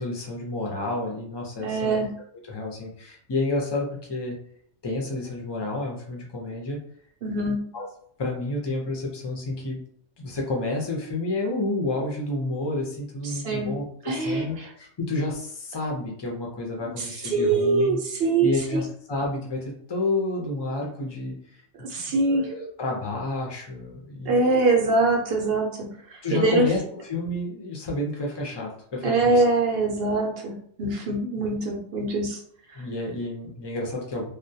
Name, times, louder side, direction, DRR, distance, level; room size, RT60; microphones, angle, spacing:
voice 1, 0.0-2.0 2.5-4.3 4.8-6.8 7.7-7.8 8.2-9.8 10.2-18.0 18.4-21.4 21.8-21.9 22.3-24.4 24.9-25.0 26.2-29.4 32.7-34.3, left 2 dB, 35° left, -1 dB, 0.4 m, -30 dB
voice 2, 1.6-2.2 7.2-7.7 13.2-13.8 14.0-14.7 17.0-18.8 21.8-22.5 24.3-26.7 29.0-32.4 32.7-32.8, right 3 dB, 60° right, 0 dB, 0.7 m, -24 dB
2.2 x 2.1 x 2.6 m, 0.63 s
omnidirectional pair, 1.2 m